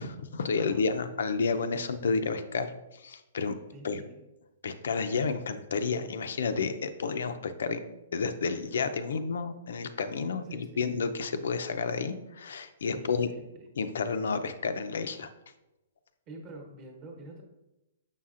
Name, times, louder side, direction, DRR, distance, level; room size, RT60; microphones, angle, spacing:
voice 1, 0.0-3.5 3.8-4.0 4.6-7.8 8.1-13.3 13.8-15.3, left 4 dB, 75° left, 9 dB, 0.5 m, -31 dB
voice 2, 3.7-4.2 10.4-10.8 12.8-13.7 16.3-17.4, right 2 dB, 25° right, 1 dB, 1.1 m, -47 dB
6.9 x 5.6 x 2.5 m, 0.97 s
hypercardioid pair, 170°, 0 cm